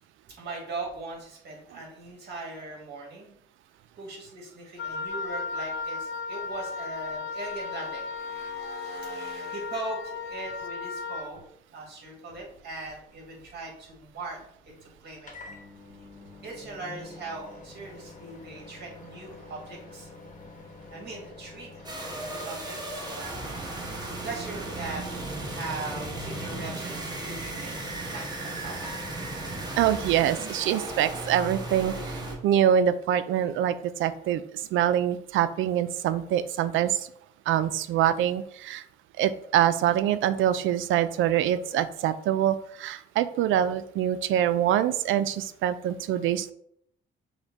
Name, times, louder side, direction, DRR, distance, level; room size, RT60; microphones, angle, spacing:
voice 1, 0.4-3.3 3.9-11.4 11.7-14.4 15.0-15.3 16.4-20.2 20.9-21.9 22.2-23.3 23.9-25.0 25.4-27.8 28.1-29.0, right 3 dB, 55° right, -1 dB, 1.9 m, -40 dB
Wind instrument woodwind instrument, 4.8-11.3, left 4 dB, 70° left, 0.6 m, -35 dB
sound 1, 12.3-30.4, left 3 dB, 40° left, 1.0 m, -47 dB
sound 2, 21.8-32.3, right 2 dB, 20° right, 1.2 m, -36 dB
voice 2, 29.7-37.1 37.5-38.8 39.2-46.5, right 10 dB, 80° right, 13 dB, 0.4 m, -25 dB
5.8 x 2.2 x 4.0 m, 0.71 s
cardioid pair, 90°, 20 cm